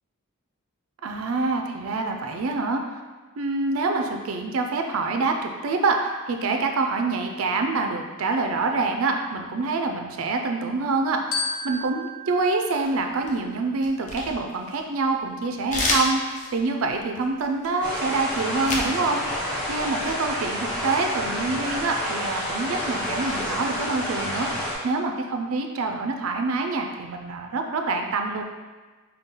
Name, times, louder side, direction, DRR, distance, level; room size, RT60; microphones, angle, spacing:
voice 1, 1.0-2.8 3.4-19.4 19.7-28.4, right 3 dB, 65° right, 4 dB, 0.4 m, -26 dB
Glockenspiel, 11.3-13.8, left 2 dB, 65° left, 0.8 m, -34 dB
sound 1, 12.8-13.4 13.8-15.1 15.7-18.9 19.2-20.1, left 2 dB, 35° left, 0.6 m, -29 dB
sound 2, 17.8-24.7, equal, 5° left, 1.2 m, -29 dB
5.4 x 2.2 x 3.7 m, 1.3 s
head